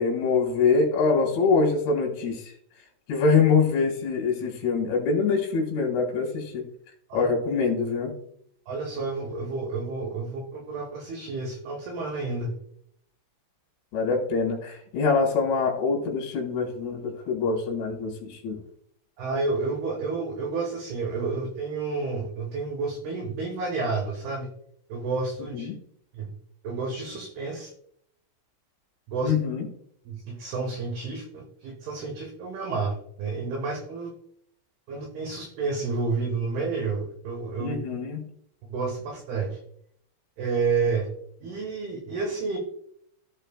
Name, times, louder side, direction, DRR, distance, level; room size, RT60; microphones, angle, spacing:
voice 1, 0.0-2.5 3.1-6.7 7.1-8.1 13.9-18.6 25.5-25.8 29.2-29.7 37.6-38.2, left 4 dB, 65° left, 1 dB, 3.8 m, -24 dB
voice 2, 8.7-12.6 19.2-24.5 24.9-25.7 26.1-26.3 26.6-27.7 29.1-29.3 30.1-34.1 34.9-37.7 38.6-39.6 40.4-41.1 41.4-42.6, right 4 dB, 80° right, 3 dB, 2.2 m, -30 dB
15.0 x 5.6 x 2.3 m, 0.69 s
omnidirectional pair, 5.8 m